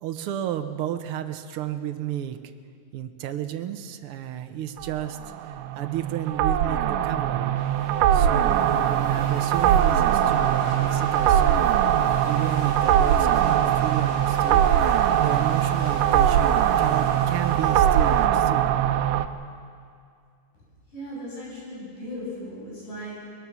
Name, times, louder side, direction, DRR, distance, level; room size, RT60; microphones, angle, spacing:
voice 1, 0.0-2.4 2.9-7.6 8.1-12.0 12.2-18.7, right 11 dB, 70° right, 8 dB, 1.3 m, -32 dB
sound 1, 4.8-19.3, right 10 dB, 90° right, 2.3 m, -21 dB
sound 2, 7.6-18.3, left 4 dB, 45° left, 2.1 m, -41 dB
voice 2, 20.9-23.2, equal, 80° left, -6 dB, 9.3 m, -37 dB
22.5 x 21.5 x 6.2 m, 2.2 s
omnidirectional pair, 3.6 m